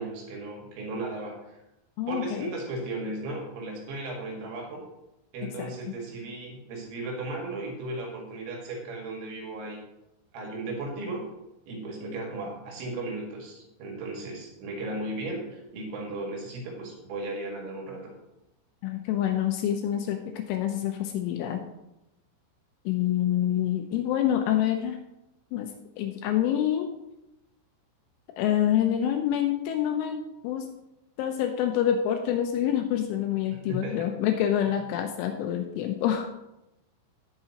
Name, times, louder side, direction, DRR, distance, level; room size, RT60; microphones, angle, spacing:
voice 1, 0.0-1.6 2.1-4.9 5.3-9.8 10.3-11.3 11.7-18.1 33.5-34.1, right 2 dB, 65° right, 0 dB, 4.0 m, -36 dB
voice 2, 2.0-2.5 5.6-5.7 18.8-21.6 22.9-25.0 25.5-25.7 26.0-26.9 28.4-30.7 31.2-36.3, left 10 dB, 80° left, 5 dB, 3.0 m, -27 dB
18.0 x 6.8 x 2.9 m, 0.90 s
omnidirectional pair, 6.0 m